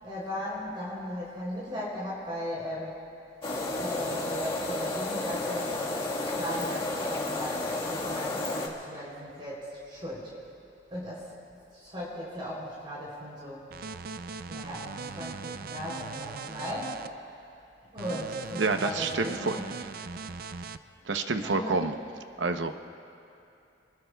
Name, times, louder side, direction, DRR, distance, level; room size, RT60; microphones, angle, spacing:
voice 1, 0.0-3.0 3.8-5.7 6.3-10.3 10.9-11.3 11.7-13.6 14.5-17.0 17.9-19.7 21.4-21.8, equal, 30° right, -6 dB, 3.4 m, -37 dB
sound 1, 3.4-8.7, left 2 dB, 30° left, 1.7 m, -32 dB
sound 2, 13.7-17.1 18.0-20.8, right 5 dB, 55° right, 0.5 m, -40 dB
voice 2, 18.6-19.6 21.1-22.0 22.4-22.7, right 3 dB, 90° right, 7 dB, 0.8 m, -28 dB
26.0 x 20.0 x 2.3 m, 2.8 s
head